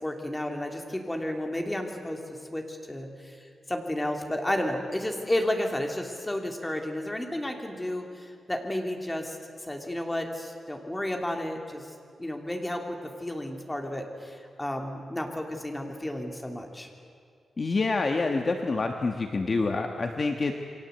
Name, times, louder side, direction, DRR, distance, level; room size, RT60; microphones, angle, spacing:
voice 1, 0.0-3.4 3.7-9.4 9.6-11.9 12.2-16.9, left 1 dB, 10° left, 3 dB, 3.0 m, -32 dB
voice 2, 17.6-20.5, left 3 dB, 35° left, 4 dB, 1.5 m, -27 dB
29.0 x 23.5 x 8.2 m, 2.4 s
wide cardioid pair, 150°, 0 cm